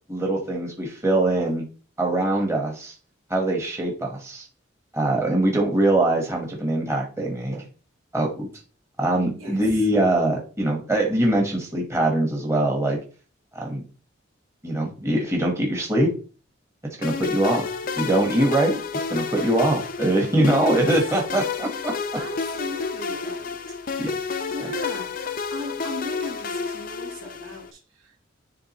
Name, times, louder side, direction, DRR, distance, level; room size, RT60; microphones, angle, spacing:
voice 1, 0.1-1.7 2.0-2.9 3.3-4.5 4.9-7.6 8.1-8.5 9.0-13.0 13.5-13.8 14.6-16.1 17.0-17.7 17.9-18.8 19.1-21.9 24.0-24.2, right 1 dB, 15° right, 0 dB, 1.1 m, -22 dB
voice 2, 9.4-9.9 20.3-20.9 22.2-23.6 24.1-28.1, left 1 dB, 85° right, -2 dB, 2.9 m, -37 dB
sound 1, 17.0-27.7, left 5 dB, 45° left, 0.5 m, -30 dB
10.5 x 3.5 x 2.9 m, 0.37 s
head